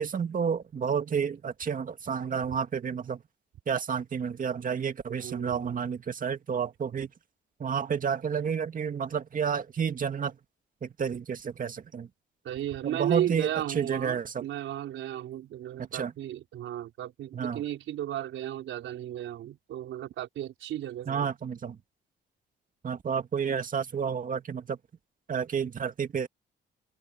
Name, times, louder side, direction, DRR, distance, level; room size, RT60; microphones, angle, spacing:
voice 1, 0.0-3.2 3.7-7.1 7.6-10.4 10.8-12.1 12.8-14.4 15.9-16.1 17.3-17.6 21.1-21.8 22.8-24.8 25.3-26.3, right 7 dB, 45° right, 2.0 m, -30 dB
voice 2, 5.1-5.8 12.4-21.3, right 12 dB, 80° right, 4.8 m, -35 dB
open air
cardioid pair, 90°, 20 cm